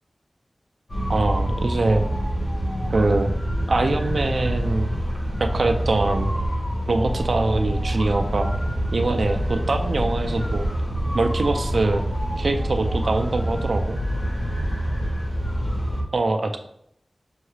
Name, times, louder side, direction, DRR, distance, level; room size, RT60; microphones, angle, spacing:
sound 1, 0.9-16.0, equal, 85° left, 1.1 m, -26 dB
voice 1, 1.1-2.1 2.9-3.3 3.7-4.9 5.4-6.3 6.9-8.5 8.9-10.7 11.1-12.0 12.4-14.0 16.1-16.6, right 2 dB, 75° right, 5 dB, 0.3 m, -23 dB
5.5 x 2.3 x 3.2 m, 0.71 s
wide cardioid pair, 85°, 0 cm